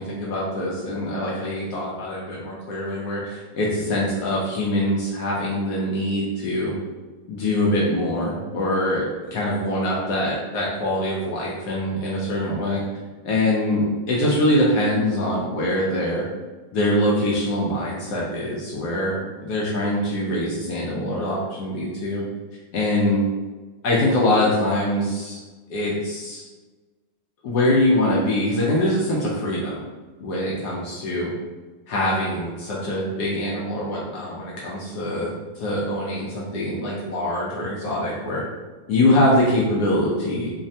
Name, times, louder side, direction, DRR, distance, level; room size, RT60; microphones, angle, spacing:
voice 1, 0.0-6.7 7.3-9.1 9.3-12.8 13.2-16.2 16.7-22.2 22.7-23.2 23.8-25.4 25.7-26.4 27.4-29.8 30.2-31.3 31.9-38.4 38.9-40.5, left 1 dB, 75° left, -5 dB, 1.0 m, -23 dB
3.3 x 2.0 x 2.6 m, 1.3 s
omnidirectional pair, 2.1 m